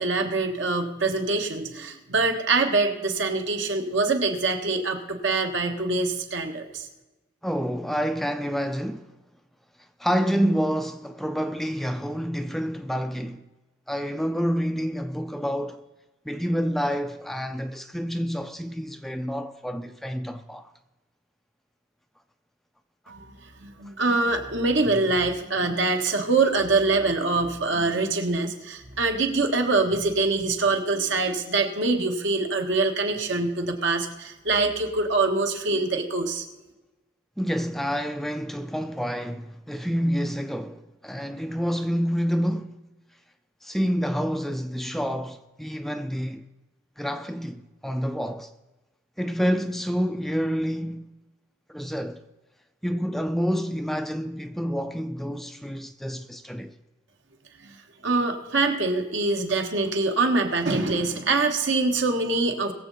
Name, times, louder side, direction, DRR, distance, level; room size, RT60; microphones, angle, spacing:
voice 1, 0.0-6.9 23.1-23.2 23.6-36.4 57.6-57.7 58.0-62.7, right 3 dB, 70° right, 1.6 m, -24 dB
voice 2, 7.4-9.1 10.0-13.4 13.9-15.9 16.3-20.7 37.4-42.8 43.6-46.4 47.0-48.5 49.2-51.1 51.7-52.2 52.8-56.7, equal, ahead, 0.4 m, -28 dB
21.5 x 7.4 x 4.1 m
head